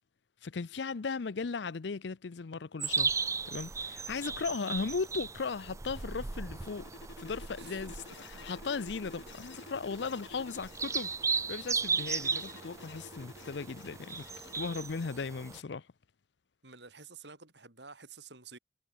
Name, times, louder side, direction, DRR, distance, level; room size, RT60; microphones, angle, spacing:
voice 1, 0.4-6.9 7.2-8.0 8.2-14.2 14.5-15.9, left 4 dB, 70° left, 0.6 m, -37 dB
sound 1, 2.8-15.6, right 5 dB, 15° right, 0.4 m, -37 dB
sound 2, 5.7-15.1, left 3 dB, 85° left, 6.3 m, -51 dB
voice 2, 7.6-8.0 16.6-18.6, right 5 dB, 65° right, 5.3 m, -51 dB
head